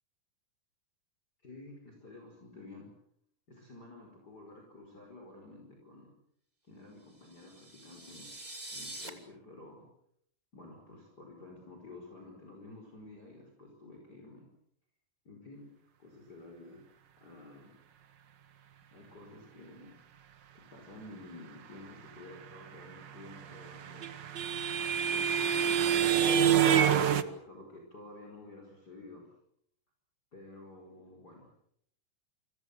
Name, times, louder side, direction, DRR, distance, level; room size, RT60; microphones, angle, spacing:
voice 1, 1.4-2.9 3.5-6.1 6.6-8.3 8.7-9.9 10.5-14.5 15.3-15.7 16.0-16.8 17.2-17.8 18.9-19.9 20.5-24.1 25.0-29.3 30.3-31.5, left 2 dB, 25° left, 0 dB, 5.6 m, -51 dB
sound 1, 7.2-9.1, right 1 dB, 15° right, 2.5 m, -45 dB
sound 2, 23.4-27.2, right 8 dB, 70° right, 1.1 m, -26 dB
30.0 x 25.0 x 6.9 m, 0.72 s
omnidirectional pair, 4.0 m